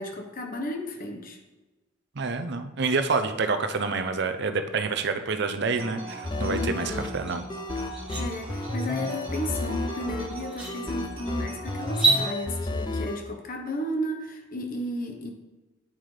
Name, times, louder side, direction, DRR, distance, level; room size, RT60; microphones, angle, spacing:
voice 1, 0.0-1.4 6.4-7.1 8.2-15.3, left 1 dB, 45° left, 4 dB, 1.1 m, -33 dB
voice 2, 2.1-7.4, right 4 dB, 60° right, 8 dB, 0.6 m, -28 dB
sound 1, 5.8-12.4, right 2 dB, 25° right, 2.1 m, -41 dB
sound 2, 6.2-13.2, left 2 dB, 20° left, 0.4 m, -32 dB
sound 3, 7.3-7.4 7.8-8.2 9.9-10.0 10.5-10.7 11.9-12.2, right 3 dB, 5° right, 1.9 m, -25 dB
8.8 x 7.6 x 3.3 m, 1.2 s
head